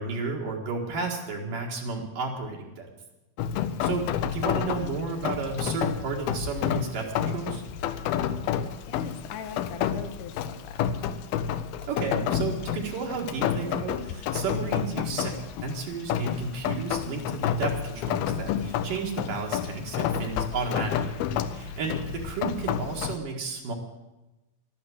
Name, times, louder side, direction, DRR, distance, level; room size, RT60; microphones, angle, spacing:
voice 1, 0.0-2.9 3.8-7.6 11.9-15.4 15.6-23.7, right 4 dB, 65° right, -1 dB, 3.3 m, -32 dB
Rain, 3.4-23.2, left 9 dB, 80° left, 2.7 m, -30 dB
voice 2, 8.8-10.8, left 7 dB, 65° left, 8 dB, 2.5 m, -41 dB
12.5 x 12.0 x 7.9 m, 1.0 s
omnidirectional pair, 4.3 m